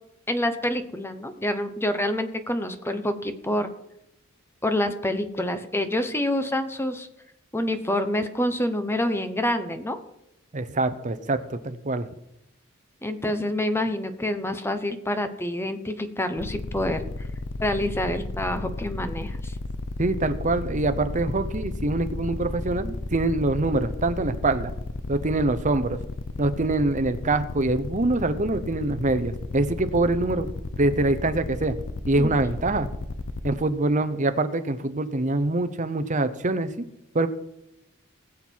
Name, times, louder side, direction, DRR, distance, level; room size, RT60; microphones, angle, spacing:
voice 1, 0.3-3.7 4.6-7.1 7.5-10.0 13.0-17.0 17.6-19.5 32.2-32.3, left 1 dB, 10° left, 9 dB, 1.0 m, -27 dB
voice 2, 10.5-12.1 20.0-24.7 25.1-26.0 26.4-30.5 30.8-31.8 32.1-32.9 33.4-36.8 37.1-37.3, right 2 dB, 35° right, 10 dB, 0.9 m, -24 dB
sound 1, 16.4-33.5, left 2 dB, 60° left, 0.7 m, -34 dB
20.0 x 7.3 x 4.7 m, 0.84 s
head